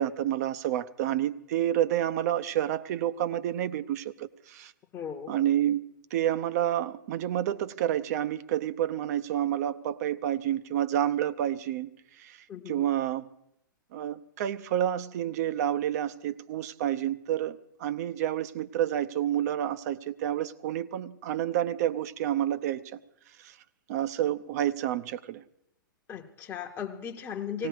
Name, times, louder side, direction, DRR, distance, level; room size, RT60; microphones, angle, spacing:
voice 1, 0.0-4.7 5.3-5.8 6.1-11.9 12.2-12.4 12.7-13.3 13.9-23.0 23.4-23.6 23.9-25.4 27.6-27.7, right 11 dB, 50° right, 14 dB, 0.6 m, -29 dB
voice 2, 4.9-5.4 12.5-12.9 26.1-27.7, left 8 dB, 20° left, 1 dB, 0.8 m, -37 dB
18.0 x 17.0 x 4.7 m, 0.82 s
hypercardioid pair, 115°, 11 cm